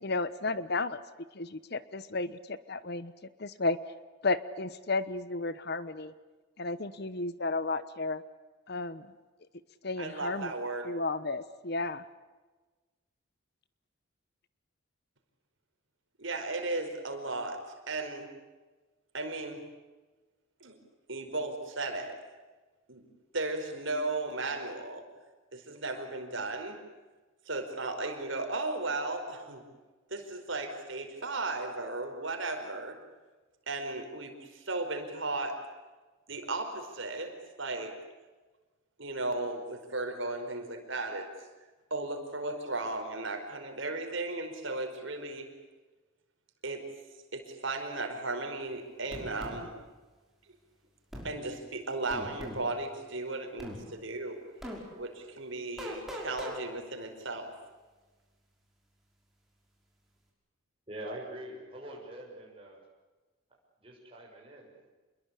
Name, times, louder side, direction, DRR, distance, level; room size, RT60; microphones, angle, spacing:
voice 1, 0.0-1.0 1.3-3.1 3.4-3.8 4.2-6.1 6.6-8.2 8.7-9.1 9.8-10.5 10.8-12.0, left 3 dB, 50° left, 15 dB, 1.0 m, -33 dB
voice 2, 10.0-10.9 16.2-17.6 17.9-18.3 19.1-19.6 20.6-20.8 21.1-22.2 22.9-23.0 23.3-25.0 25.5-26.8 27.5-29.6 30.1-33.0 33.7-35.6 36.3-37.9 39.0-41.3 41.9-45.5 46.6-46.9 47.3-49.7 51.2-54.4 55.0-57.5, right 2 dB, 65° right, 5 dB, 5.0 m, -35 dB
sound 1, 49.1-49.6 51.1-51.3 52.1-52.6 53.6-53.8 54.6-54.8 55.8-56.6, equal, ahead, 5.8 m, -40 dB
voice 3, 60.9-62.8 63.8-64.9, right 1 dB, 25° right, -2 dB, 6.6 m, -44 dB
27.5 x 22.0 x 8.4 m, 1.3 s
head